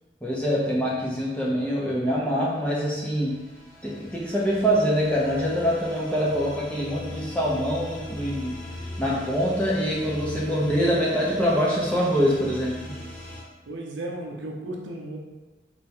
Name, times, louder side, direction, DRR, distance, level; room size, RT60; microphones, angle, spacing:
voice 1, 0.2-3.4 3.8-8.6 9.0-13.0, equal, 5° left, -5 dB, 0.6 m, -24 dB
sound 1, 2.5-13.4, left 1 dB, 45° left, 1.0 m, -40 dB
voice 2, 13.7-15.2, right 1 dB, 80° right, -1 dB, 0.6 m, -34 dB
3.4 x 2.2 x 4.3 m, 1.1 s
head